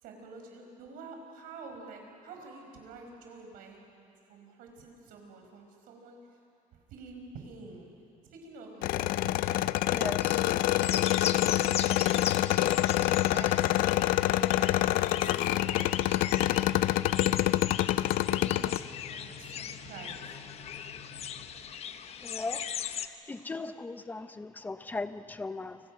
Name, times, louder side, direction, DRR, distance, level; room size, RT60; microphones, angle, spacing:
voice 1, 0.0-6.4 6.7-7.9 8.2-12.1 12.5-17.1 18.2-20.5, right 4 dB, 85° right, 3 dB, 5.3 m, -48 dB
sound 1, 8.8-18.8, left 15 dB, 85° left, 0.5 m, -26 dB
sound 2, 10.8-23.1, left 9 dB, 45° left, 0.9 m, -38 dB
sound 3, 14.9-21.5, left 4 dB, 65° left, 7.2 m, -49 dB
voice 2, 22.2-22.6 23.0-25.8, left 3 dB, 10° left, 11 dB, 0.8 m, -37 dB
28.5 x 26.0 x 6.5 m, 2.5 s
cardioid pair, 165°, 14 cm